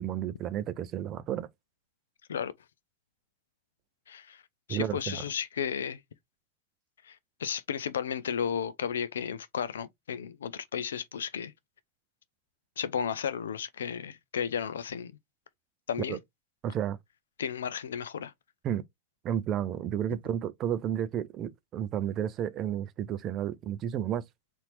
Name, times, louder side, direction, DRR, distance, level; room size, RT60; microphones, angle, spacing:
voice 1, 0.0-1.5 4.7-5.2 16.1-16.2 16.6-17.0 18.6-18.8 19.2-24.2, right 10 dB, 30° right, 0.4 m, -32 dB
voice 2, 4.1-4.4 4.7-6.0 7.0-11.5 12.8-15.1 15.9-16.2 17.4-18.3, left 8 dB, 65° left, 0.4 m, -33 dB
4.1 x 2.6 x 3.1 m
figure-of-eight pair, 90°, 0 cm